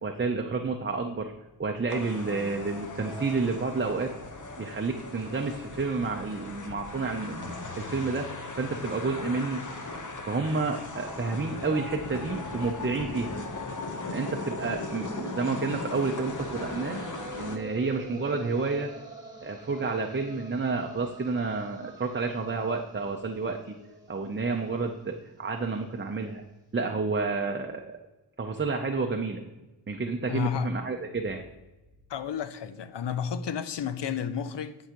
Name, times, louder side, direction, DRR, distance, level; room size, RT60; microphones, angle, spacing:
voice 1, 0.0-1.3 1.6-4.1 4.6-9.7 10.3-13.3 14.1-17.0 17.4-18.9 19.4-23.8 24.1-26.4 26.7-28.0 28.4-29.4 29.9-31.4, right 4 dB, 30° right, 0.6 m, -30 dB
sound 1, 1.9-17.6, left 2 dB, 45° left, 0.9 m, -38 dB
sound 2, 15.7-25.7, right 1 dB, 10° right, 1.5 m, -47 dB
voice 2, 30.3-30.7 32.1-34.8, left 7 dB, 85° left, 0.6 m, -31 dB
10.5 x 4.8 x 2.9 m
cardioid pair, 55°, 41 cm